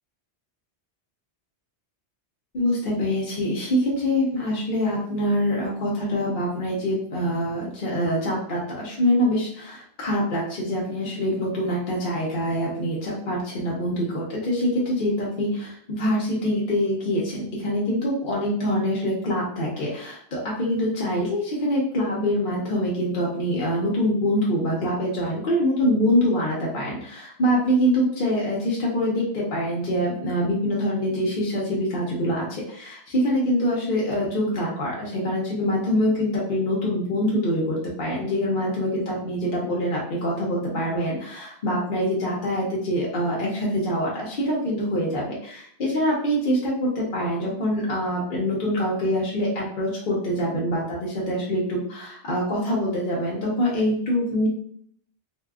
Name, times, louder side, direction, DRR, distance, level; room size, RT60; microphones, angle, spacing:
voice 1, 2.5-54.5, equal, 55° left, -4 dB, 0.8 m, -25 dB
2.7 x 2.3 x 2.2 m, 0.63 s
omnidirectional pair, 1.1 m